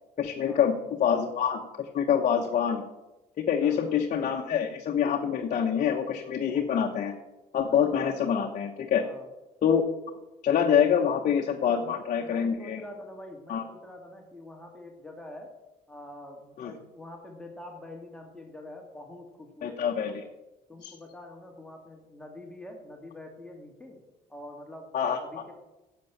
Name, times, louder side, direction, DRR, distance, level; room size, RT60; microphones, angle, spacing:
voice 1, 0.2-2.8 3.4-7.1 7.5-9.0 9.6-9.8 10.4-12.8 13.5-13.6 16.6-16.7 19.6-20.2 20.8-20.9 24.9-25.2, left 8 dB, 50° left, 1 dB, 1.1 m, -26 dB
voice 2, 3.6-4.0 9.0-9.3 11.8-15.5 15.9-20.2 20.7-24.0 24.3-25.5, left 1 dB, 5° left, 1 dB, 2.0 m, -45 dB
10.5 x 7.0 x 7.2 m, 1.0 s
cardioid pair, 110°, 17 cm